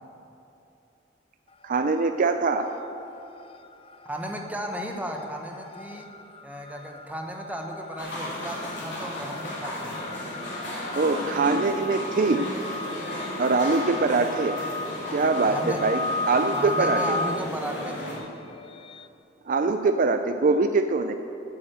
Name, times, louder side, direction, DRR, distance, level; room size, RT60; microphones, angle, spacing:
sound 1, 1.5-2.2 2.4-19.1, left 2 dB, 30° left, 0.4 m, -36 dB
voice 1, 1.6-2.7 10.9-12.5 13.4-14.5 15.1-16.0 16.3-17.2 19.5-21.1, right 3 dB, 45° right, 8 dB, 0.4 m, -23 dB
voice 2, 4.0-6.1 6.4-10.0 15.4-15.8 16.5-18.2, equal, 10° right, 2 dB, 1.1 m, -35 dB
sound 2, 8.0-18.2, left 1 dB, 70° left, 3.2 m, -34 dB
9.0 x 8.7 x 8.0 m, 2.8 s
head